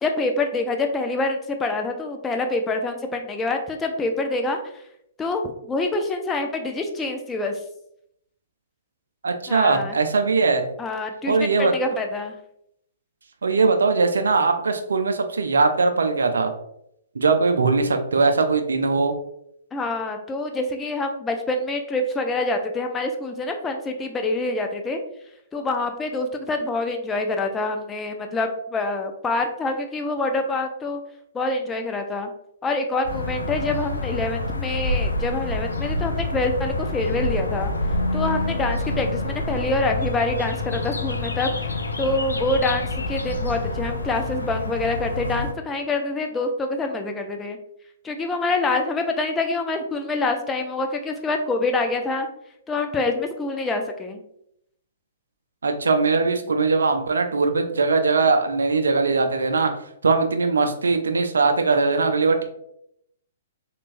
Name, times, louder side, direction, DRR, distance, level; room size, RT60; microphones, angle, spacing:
voice 1, 0.0-4.6 5.2-7.5 9.5-10.0 10.8-12.3 19.7-25.0 25.5-31.0 31.3-32.3 32.6-37.7 38.1-41.5 42.0-47.6 48.0-52.3 52.7-54.2, left 2 dB, 15° left, 4 dB, 0.5 m, -26 dB
voice 2, 9.2-10.6 11.3-12.0 13.4-16.5 17.1-19.1 55.6-59.7 60.0-62.4, right 4 dB, 75° right, 5 dB, 0.4 m, -20 dB
sound 1, 33.0-45.5, left 2 dB, 85° left, 0.4 m, -27 dB
3.3 x 3.0 x 2.5 m, 0.75 s
figure-of-eight pair, 125°, 0 cm